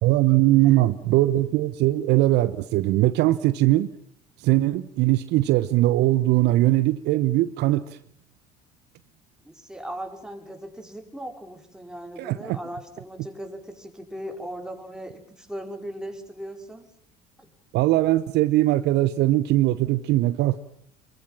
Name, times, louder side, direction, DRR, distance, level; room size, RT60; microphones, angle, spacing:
voice 1, 0.0-3.9 4.4-7.8 12.2-12.6 17.7-20.6, right 16 dB, 55° right, 14 dB, 1.0 m, -20 dB
voice 2, 9.4-16.9 17.4-17.5, equal, 5° right, 4 dB, 5.0 m, -38 dB
26.5 x 23.0 x 7.4 m, 0.67 s
figure-of-eight pair, 60°, 21 cm